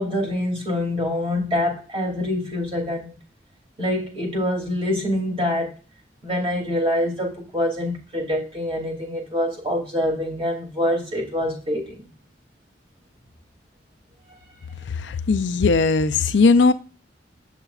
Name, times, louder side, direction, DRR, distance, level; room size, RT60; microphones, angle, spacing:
voice 1, 0.0-3.2 3.8-5.7 6.2-12.1, left 1 dB, 30° right, 2.7 m, -25 dB
voice 2, 15.0-16.7, left 4 dB, 90° left, 0.5 m, -18 dB
8.2 x 6.8 x 2.4 m
head